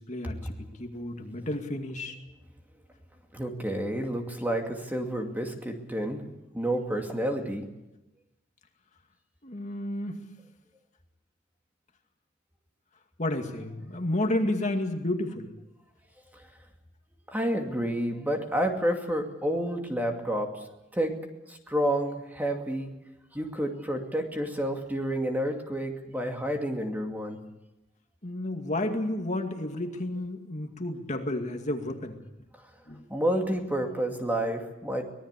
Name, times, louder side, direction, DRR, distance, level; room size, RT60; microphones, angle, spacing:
voice 1, 0.0-2.2 9.4-10.2 13.2-15.5 28.2-32.2 32.9-33.1, left 1 dB, 40° left, 4 dB, 2.4 m, -31 dB
voice 2, 3.3-6.3 6.5-7.7 17.3-20.7 20.9-22.9 23.3-27.4 33.1-35.1, right 1 dB, 10° right, 3 dB, 2.4 m, -30 dB
24.5 x 19.0 x 8.3 m, 0.93 s
head